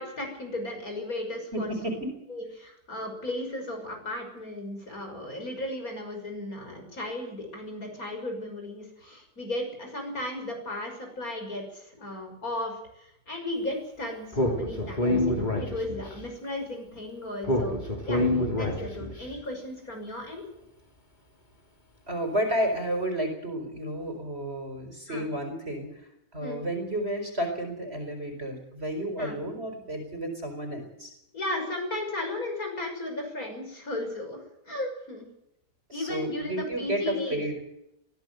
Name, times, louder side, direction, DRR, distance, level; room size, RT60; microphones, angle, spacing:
voice 1, 0.0-1.7 2.3-17.8 18.1-18.2 18.6-20.4 25.1-25.3 26.4-26.6 29.2-29.4 31.3-35.3 35.9-37.4, left 1 dB, 55° left, 3 dB, 6.5 m, -35 dB
voice 2, 1.5-2.1 22.1-26.0 26.3-31.1 35.9-37.6, right 1 dB, 35° right, 5 dB, 4.7 m, -31 dB
Speech, 14.3-16.2 17.4-19.2, left 1 dB, 25° left, 3.4 m, -26 dB
22.0 x 16.0 x 7.9 m, 0.79 s
omnidirectional pair, 1.8 m